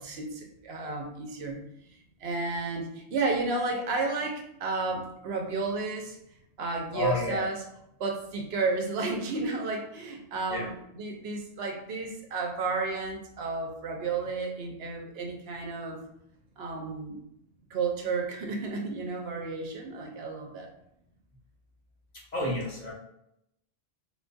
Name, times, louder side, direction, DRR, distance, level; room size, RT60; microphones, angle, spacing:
voice 1, 0.0-1.6 2.2-6.2 6.6-7.6 8.0-16.0 16.6-17.2 17.7-20.7, right 3 dB, 75° right, 2 dB, 0.8 m, -32 dB
voice 2, 6.9-7.4 10.5-10.7 22.3-22.9, left 2 dB, 45° left, -5 dB, 0.9 m, -30 dB
3.7 x 2.2 x 2.6 m, 0.77 s
omnidirectional pair, 1.1 m